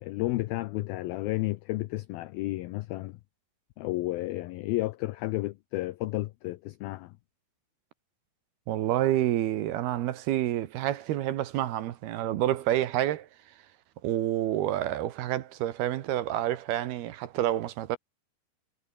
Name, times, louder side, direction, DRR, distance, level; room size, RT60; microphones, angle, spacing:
voice 1, 0.0-3.2 3.8-7.1, left 18 dB, 90° left, 2.1 m, -32 dB
voice 2, 8.7-13.3 14.0-18.0, right 13 dB, 70° right, 2.9 m, -28 dB
omnidirectional pair, 5.1 m